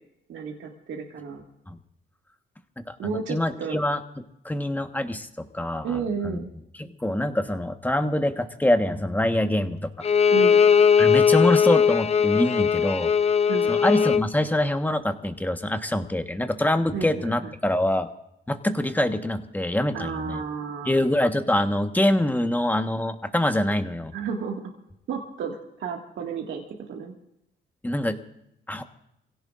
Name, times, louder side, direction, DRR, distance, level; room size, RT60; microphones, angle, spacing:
voice 1, 0.3-1.4 3.0-3.8 5.8-6.5 10.3-10.6 13.5-13.8 16.9-17.5 19.9-21.1 24.1-24.6 25.1-26.6 26.9-27.1, right 6 dB, 75° right, 0 dB, 2.0 m, -32 dB
voice 2, 2.9-4.0 4.4-6.4 6.8-9.9 11.0-13.1 13.7-18.1 18.5-20.4 20.8-24.1 27.8-28.2 28.7-28.8, left 1 dB, 10° left, 7 dB, 1.3 m, -25 dB
Bowed string instrument, 10.0-14.3, left 7 dB, 30° left, 0.6 m, -19 dB
26.5 x 16.5 x 2.5 m, 0.80 s
cardioid pair, 90°, 20 cm